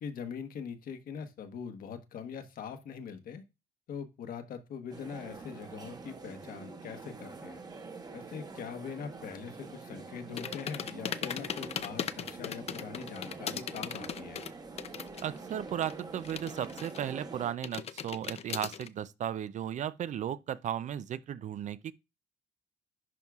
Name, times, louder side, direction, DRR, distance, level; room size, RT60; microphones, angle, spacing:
voice 1, 0.0-3.4 3.9-7.6 8.1-14.4, left 6 dB, 55° left, 1.2 m, -42 dB
sound 1, 4.9-17.5, right 4 dB, 25° right, 1.1 m, -46 dB
sound 2, 10.4-15.4 15.6-17.2 17.6-18.9, left 8 dB, 40° left, 0.5 m, -38 dB
voice 2, 15.2-21.9, right 10 dB, 45° right, 0.5 m, -35 dB
11.0 x 4.6 x 2.4 m
cardioid pair, 110°, 17 cm